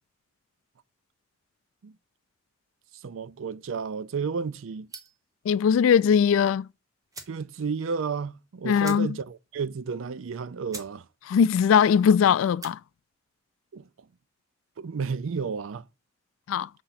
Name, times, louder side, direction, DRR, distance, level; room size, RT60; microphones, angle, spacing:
voice 1, 2.9-4.9 7.3-11.1 13.7-14.1 14.8-15.9, right 5 dB, 85° right, 0.4 m, -32 dB
sound 1, 4.9-5.3 6.6-6.7 7.1-7.4 7.8-7.9 8.1-8.3 8.8-9.4 9.7-9.8 10.3-10.4 10.7-11.0 11.3-11.7 12.4-12.8, right 3 dB, 15° right, 1.0 m, -43 dB
voice 2, 5.5-6.7 8.6-9.1 11.3-12.8 16.5-16.7, left 7 dB, 85° left, 0.3 m, -20 dB
6.9 x 3.7 x 5.7 m
head